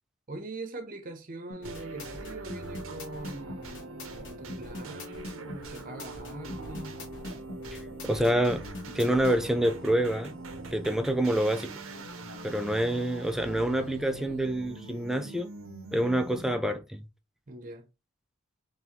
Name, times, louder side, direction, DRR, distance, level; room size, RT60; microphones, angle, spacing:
voice 1, 0.3-7.1 17.5-17.8, right 2 dB, 45° right, 0.9 m, -42 dB
sound 1, 1.5-9.4, left 1 dB, 65° left, 1.4 m, -42 dB
sound 2, 1.6-16.8, right 2 dB, 85° right, 0.8 m, -42 dB
voice 2, 8.0-8.6 8.9-10.3 10.7-11.7 12.4-15.5 15.9-17.0, right 1 dB, ahead, 0.5 m, -27 dB
3.7 x 3.4 x 2.9 m
head